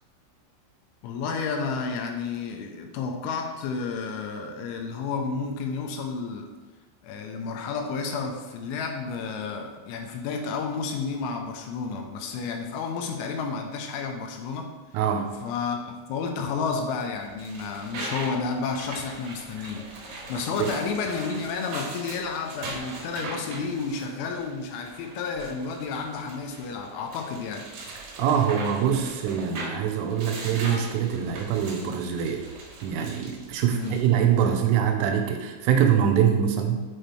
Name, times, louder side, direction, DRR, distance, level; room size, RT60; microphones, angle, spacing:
voice 1, 1.0-6.5 7.0-14.7 15.4-27.7 33.7-34.0, left 5 dB, 85° left, 3 dB, 3.0 m, -31 dB
voice 2, 14.9-15.4 19.6-19.7 20.6-20.7 28.2-32.5 32.8-36.8, right 8 dB, 90° right, 4 dB, 3.2 m, -24 dB
sound 1, 17.1-34.6, right 2 dB, 65° right, 2.4 m, -40 dB
8.9 x 4.4 x 3.3 m, 1.3 s
omnidirectional pair, 5.8 m